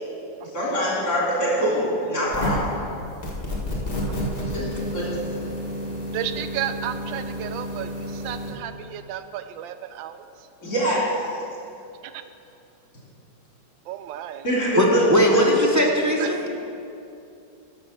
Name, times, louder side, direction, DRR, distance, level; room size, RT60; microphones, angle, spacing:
voice 1, 0.5-2.8 4.5-5.1 10.6-11.0 14.4-15.4, equal, 50° left, -6 dB, 3.6 m, -24 dB
sound 1, 2.3-2.7 3.2-8.5, equal, 20° left, 1.7 m, -30 dB
voice 2, 6.1-10.2 12.0-12.2 13.9-14.4 16.2-16.3, right 10 dB, 80° right, 10 dB, 1.3 m, -33 dB
voice 3, 14.8-16.5, equal, 15° right, -2 dB, 0.6 m, -20 dB
12.0 x 6.4 x 6.5 m, 2.7 s
omnidirectional pair, 2.1 m